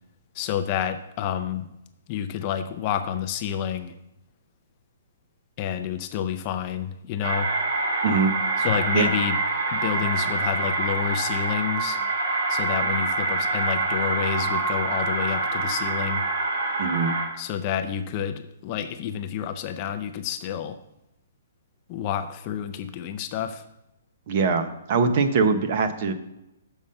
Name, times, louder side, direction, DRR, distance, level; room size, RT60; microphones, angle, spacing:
voice 1, 0.4-1.7 2.1-3.9 5.6-7.5 8.6-9.4 9.7-12.0 12.5-16.2 17.4-20.8 21.9-23.6, left 9 dB, 25° left, 8 dB, 0.4 m, -29 dB
sound 1, 7.2-17.3, right 3 dB, 50° right, 1.4 m, -26 dB
voice 2, 16.8-17.2 24.3-26.1, right 4 dB, 35° right, 9 dB, 0.7 m, -22 dB
7.0 x 5.5 x 6.4 m, 0.90 s
hypercardioid pair, 175°, 0 cm